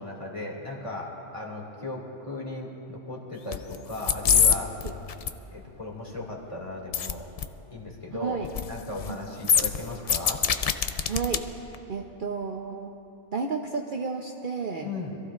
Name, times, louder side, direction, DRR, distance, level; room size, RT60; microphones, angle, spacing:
voice 1, 0.0-4.8 5.5-7.3 7.7-8.4 8.7-10.5 14.8-15.2, left 2 dB, 25° left, -3 dB, 2.3 m, -36 dB
sound 1, 3.5-3.8 4.0-4.6 4.8-5.3 6.9-7.1 7.4-7.5 8.4-8.7 9.0-9.1 9.4-11.4 11.7-11.8, left 7 dB, 65° left, 0.3 m, -23 dB
voice 2, 8.2-8.5 9.1-9.2 9.4-9.5 11.1-11.5 11.9-12.9 13.3-14.9, right 5 dB, 50° right, 2 dB, 0.8 m, -31 dB
26.0 x 15.0 x 2.4 m, 2.9 s
omnidirectional pair, 1.2 m